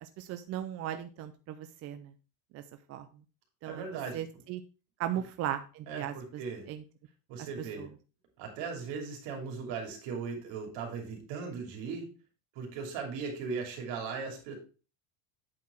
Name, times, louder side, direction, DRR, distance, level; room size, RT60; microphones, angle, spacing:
voice 1, 0.0-2.1 2.5-2.6 2.9-3.2 3.6-4.6 5.0-6.4 6.7-6.8 7.4-7.9, right 11 dB, 35° right, 9 dB, 0.4 m, -38 dB
voice 2, 3.6-4.2 5.9-6.7 7.3-7.9 8.4-12.1 12.5-14.6, right 5 dB, 60° right, 2 dB, 3.0 m, -38 dB
8.4 x 4.8 x 4.4 m, 0.34 s
cardioid pair, 170°, 49 cm